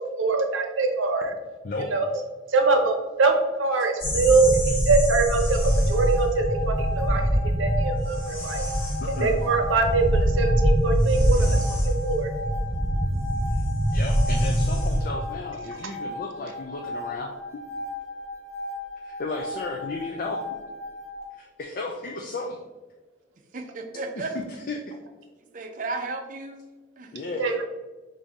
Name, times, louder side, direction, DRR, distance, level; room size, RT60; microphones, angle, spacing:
voice 1, 0.0-1.3 1.9-2.1 2.5-3.3 3.6-4.6 4.9-5.6 5.9-7.3 7.6-8.7 9.2-11.5 11.8-12.3 27.4-27.5, right 3 dB, 85° right, 4 dB, 0.7 m, -23 dB
sound 1, 4.0-15.0, equal, 30° left, 1.4 m, -24 dB
sound 2, 5.4-21.3, left 2 dB, 5° right, 1.1 m, -37 dB
voice 2, 9.0-9.4 13.5-13.6 13.9-17.3 19.0-20.4 21.4-22.6 24.2-25.0 27.1-27.5, left 3 dB, 45° left, 1 dB, 0.4 m, -34 dB
voice 3, 23.5-24.3 25.5-26.7 27.0-27.1, right 3 dB, 40° right, 5 dB, 0.5 m, -33 dB
5.4 x 2.6 x 3.5 m, 1.2 s
head